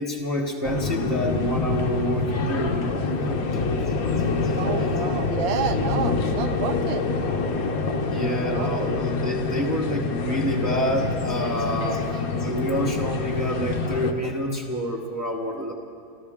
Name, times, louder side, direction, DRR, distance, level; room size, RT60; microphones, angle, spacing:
voice 1, 0.0-3.5 3.8-3.9 4.4-4.5 8.1-15.7, equal, 15° right, -3 dB, 0.5 m, -28 dB
sound 1, 0.6-14.1, left 4 dB, 55° left, 1.3 m, -26 dB
voice 2, 4.6-7.1 8.4-9.0, right 8 dB, 75° right, 9 dB, 1.4 m, -30 dB
27.5 x 13.0 x 3.6 m, 2.5 s
omnidirectional pair, 2.1 m